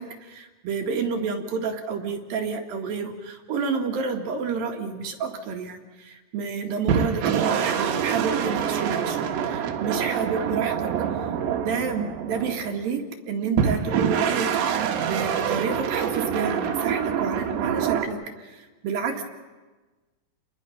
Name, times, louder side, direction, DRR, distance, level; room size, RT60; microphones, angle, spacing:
voice 1, 0.0-19.2, right 5 dB, 65° right, 4 dB, 3.0 m, -30 dB
sound 1, 6.9-12.8 13.6-18.1, right 8 dB, 80° right, 3.7 m, -26 dB
29.5 x 21.5 x 5.7 m, 1.2 s
omnidirectional pair, 5.0 m